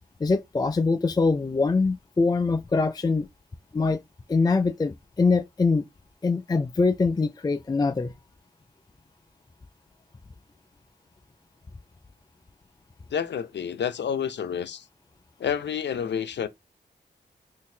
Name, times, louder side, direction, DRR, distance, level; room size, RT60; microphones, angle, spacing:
voice 1, 0.0-3.3 3.7-4.0 4.3-5.8 6.2-8.1, left 4 dB, 20° left, 0.4 m, -23 dB
voice 2, 13.1-14.8 15.4-16.5, left 8 dB, 75° left, 0.6 m, -29 dB
3.9 x 2.7 x 2.7 m
cardioid pair, 55°, 18 cm